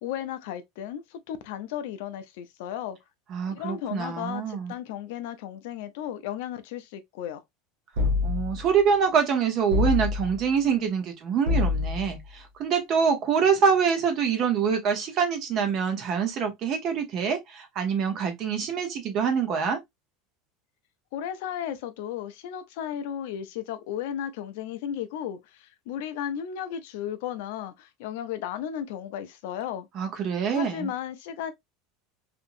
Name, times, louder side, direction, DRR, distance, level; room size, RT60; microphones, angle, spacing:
voice 1, 0.0-3.0 3.5-7.4 21.1-29.9 30.5-31.5, left 10 dB, 60° left, 0.5 m, -34 dB
voice 2, 3.3-4.7 8.2-19.8 29.9-30.9, right 6 dB, 30° right, 0.7 m, -25 dB
sound 1, 7.9-8.7 9.7-10.5 11.4-12.2, left 4 dB, 70° right, 0.9 m, -26 dB
2.9 x 2.6 x 2.5 m
supercardioid pair, 180°, 0 cm